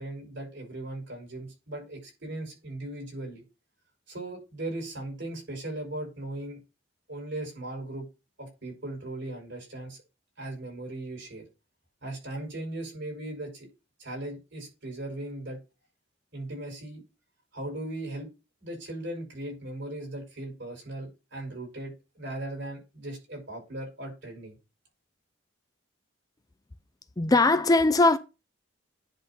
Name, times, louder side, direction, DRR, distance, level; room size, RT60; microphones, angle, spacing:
voice 1, 0.0-3.4 4.1-6.6 7.1-8.1 8.4-10.0 10.4-11.4 12.0-13.7 14.0-15.6 16.3-17.0 17.5-18.3 18.6-24.6, right 1 dB, 60° right, 6.0 m, -38 dB
voice 2, 27.2-28.2, left 2 dB, 20° left, 0.4 m, -20 dB
10.5 x 3.8 x 5.8 m
head